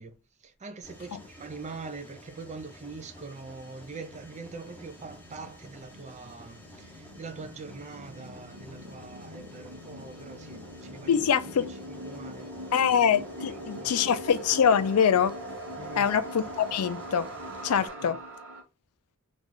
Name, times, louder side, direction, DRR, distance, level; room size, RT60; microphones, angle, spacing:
voice 1, 0.0-11.5 11.9-12.5 13.4-14.2 15.8-16.1 17.8-18.1, right 4 dB, 30° right, 0.4 m, -43 dB
Mechanisms, 0.8-17.9, left 1 dB, 5° left, 0.8 m, -51 dB
sound 1, 3.6-18.6, right 1 dB, 60° right, 0.9 m, -42 dB
voice 2, 11.1-11.7 12.7-15.4 15.9-17.3 17.6-18.2, left 7 dB, 80° left, 0.4 m, -24 dB
3.1 x 2.5 x 3.6 m
head